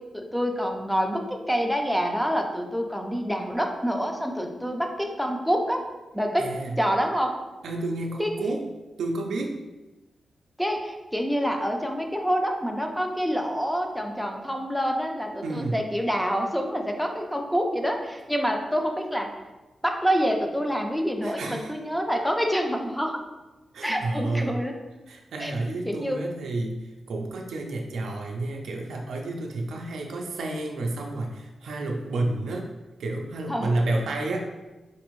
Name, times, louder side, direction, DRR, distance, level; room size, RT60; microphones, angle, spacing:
voice 1, 0.1-5.8 6.1-6.5 6.8-7.3 8.2-8.3 10.6-19.3 19.8-23.2 23.8-24.7 25.4-25.5 25.9-26.2 33.5-33.7, equal, ahead, 3 dB, 0.4 m, -27 dB
voice 2, 6.4-6.8 7.6-8.6 9.0-9.6 15.4-15.8 21.2-21.7 23.7-24.6 25.1-32.7 33.0-34.4, right 2 dB, 85° right, 1 dB, 0.4 m, -30 dB
4.1 x 2.5 x 3.0 m, 1.1 s
wide cardioid pair, 110°, 0 cm